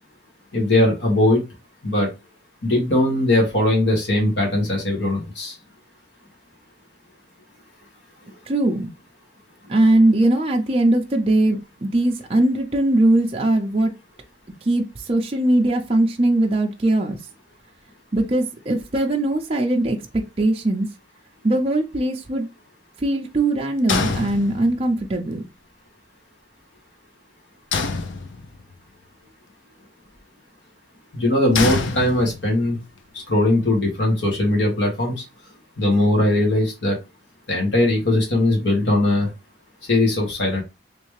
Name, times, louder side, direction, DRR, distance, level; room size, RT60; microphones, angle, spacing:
voice 1, 0.5-1.4 1.8-2.1 2.6-5.5 31.1-32.8 33.3-35.2 35.8-37.0 37.5-39.3 39.9-40.6, left 1 dB, 70° left, 1.5 m, -20 dB
voice 2, 8.5-8.9 9.7-13.9 14.6-17.2 18.1-20.9 21.4-22.5 23.0-25.4, right 1 dB, 35° right, 0.5 m, -20 dB
sound 1, 23.9-25.0 27.7-28.7 31.5-32.7, left 4 dB, 90° left, 0.6 m, -26 dB
3.3 x 3.1 x 3.2 m
head